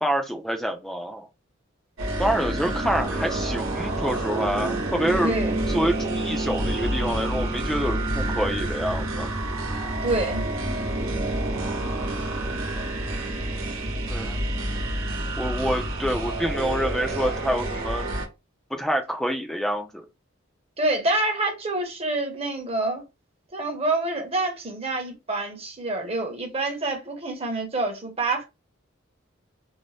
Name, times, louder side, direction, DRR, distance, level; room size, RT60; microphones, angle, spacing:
voice 1, 0.0-1.3 2.2-5.4 5.7-9.3 14.1-14.4 15.4-18.1 18.8-20.1, equal, ahead, 0.4 m, -27 dB
sound 1, 2.0-18.3, right 1 dB, 70° right, 0.9 m, -28 dB
voice 2, 5.2-5.6 10.0-10.4 20.8-23.0 23.5-28.4, right 2 dB, 30° right, 0.8 m, -27 dB
2.6 x 2.1 x 3.2 m
head